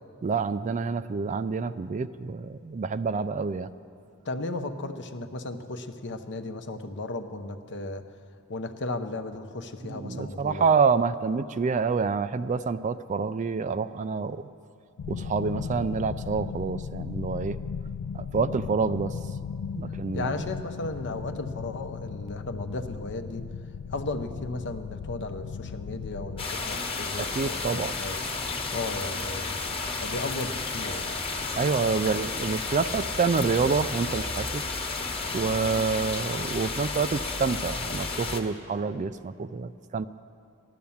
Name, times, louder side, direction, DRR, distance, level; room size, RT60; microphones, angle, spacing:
voice 1, 0.2-3.7 9.8-14.4 15.1-17.6 18.1-19.1 19.7-20.4 27.2-27.9 31.5-34.6 35.3-40.1, right 5 dB, 35° right, 13 dB, 0.4 m, -27 dB
voice 2, 4.2-8.0 8.5-10.6 20.1-23.4 23.9-28.2 28.7-29.6 30.0-31.2, left 2 dB, 55° left, 7 dB, 0.8 m, -35 dB
sound 1, 15.0-26.5, left 6 dB, 90° left, 0.3 m, -36 dB
sound 2, 26.4-38.4, left 3 dB, 25° left, 1.2 m, -32 dB
15.5 x 12.0 x 7.1 m, 2.4 s
head